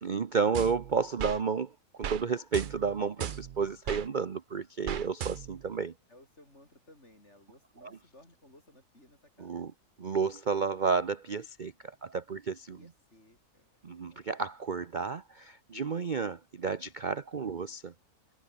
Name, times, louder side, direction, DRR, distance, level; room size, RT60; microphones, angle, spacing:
voice 1, 0.0-1.7 2.0-5.9 7.8-7.9 9.4-9.7 10.0-11.7 12.0-12.8 13.8-17.9, right 5 dB, 40° right, 0.8 m, -31 dB
sound 1, 0.5-1.4 2.0-2.2 2.5-4.1 4.9-5.7, right 9 dB, 90° right, 0.4 m, -37 dB
voice 2, 6.1-9.5 12.7-14.4, left 1 dB, 45° left, 8.3 m, -59 dB
omnidirectional pair, 1.7 m